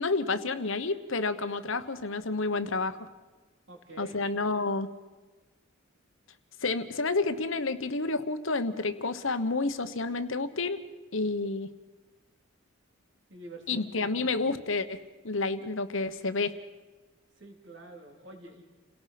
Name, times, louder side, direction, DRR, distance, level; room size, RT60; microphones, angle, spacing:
voice 1, 0.0-3.1 4.0-4.9 6.6-10.8 11.1-11.7 13.7-15.0 15.2-16.5, left 3 dB, 70° left, 10 dB, 1.3 m, -30 dB
voice 2, 3.7-4.3 13.3-14.3 17.4-18.6, right 2 dB, 60° right, 2 dB, 3.9 m, -47 dB
29.0 x 18.0 x 6.0 m, 1.2 s
head